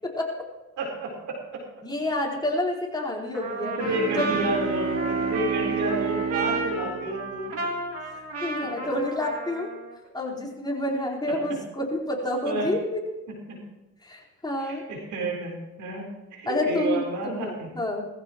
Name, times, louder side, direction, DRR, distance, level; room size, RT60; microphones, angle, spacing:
voice 1, 0.8-1.1 1.5-1.6 3.6-7.7 12.4-12.7 13.5-13.6 14.6-16.0 16.3-17.7, right 2 dB, 85° right, -2 dB, 4.3 m, -30 dB
voice 2, 1.8-3.8 4.1-4.3 8.1-9.7 10.1-12.8 14.0-14.8 16.5-18.0, left 1 dB, 15° left, -3 dB, 4.4 m, -29 dB
Trumpet, 3.3-10.0, right 3 dB, 50° right, 2.7 m, -33 dB
Bowed string instrument, 3.8-8.1, right 5 dB, 70° right, 3.4 m, -30 dB
21.0 x 15.0 x 3.1 m, 1.1 s
cardioid pair, 90°, 30 cm